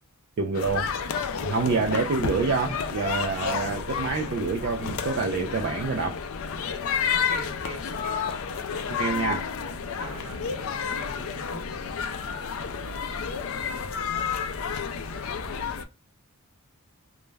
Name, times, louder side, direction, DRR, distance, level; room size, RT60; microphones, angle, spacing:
voice 1, 0.4-0.9 1.4-6.2 8.9-9.5, right 4 dB, 50° right, 0.3 m, -27 dB
sound 1, 0.5-15.8, left 6 dB, 65° left, 0.4 m, -31 dB
voice 2, 7.1-8.2 10.0-11.7, right 2 dB, 80° right, 0.8 m, -42 dB
2.2 x 2.1 x 3.1 m
head